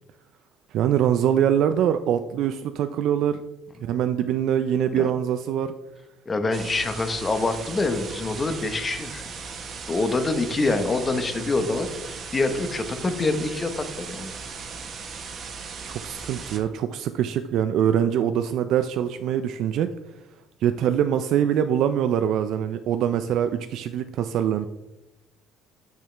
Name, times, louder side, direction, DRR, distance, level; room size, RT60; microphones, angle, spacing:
voice 1, 0.7-3.4 3.8-5.7 15.9-19.9 20.6-24.7, right 9 dB, 65° right, 9 dB, 0.4 m, -23 dB
voice 2, 6.3-9.2 9.9-14.3, left 3 dB, 25° left, 8 dB, 0.9 m, -26 dB
sound 1, 6.5-16.6, right 5 dB, 45° right, 1.1 m, -37 dB
8.3 x 6.4 x 3.3 m, 1.0 s
cardioid pair, 105°, 0 cm